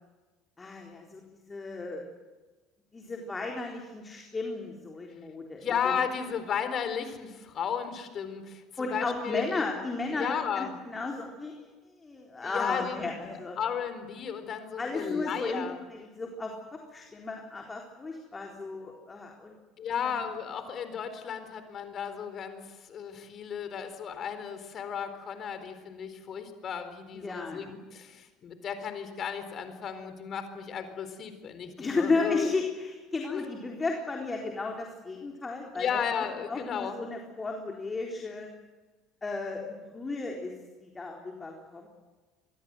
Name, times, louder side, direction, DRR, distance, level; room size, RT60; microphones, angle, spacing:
voice 1, 0.6-1.2 1.5-2.0 2.9-5.9 8.8-11.7 12.0-13.6 14.8-19.6 20.1-20.2 27.1-27.7 31.8-36.0 36.5-38.5 39.2-39.7 39.9-40.5 40.8-41.9, left 3 dB, 25° left, 1 dB, 4.0 m, -34 dB
voice 2, 5.6-9.6 10.1-10.8 12.4-15.8 19.8-32.5 33.3-33.4 35.7-37.0, left 7 dB, 45° left, 9 dB, 4.1 m, -34 dB
25.5 x 22.5 x 8.0 m, 1.3 s
hypercardioid pair, 65°, 0 cm